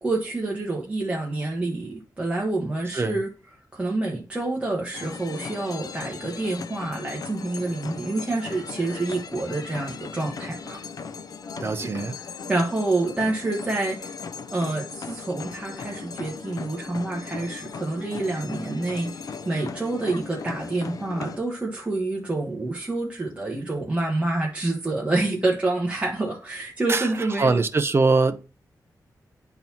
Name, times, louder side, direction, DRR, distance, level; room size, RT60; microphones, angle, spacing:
voice 1, 0.0-3.3 3.7-10.8 11.8-11.9 12.1-12.2 12.5-14.2 14.5-27.6, right 2 dB, 15° right, 1.1 m, -27 dB
sound 1, 4.9-21.4, left 5 dB, 60° left, 0.4 m, -38 dB
voice 2, 11.6-12.1 26.9-27.1 27.4-28.4, right 3 dB, 35° right, 0.6 m, -22 dB
10.5 x 4.0 x 2.8 m
wide cardioid pair, 150°, 7 cm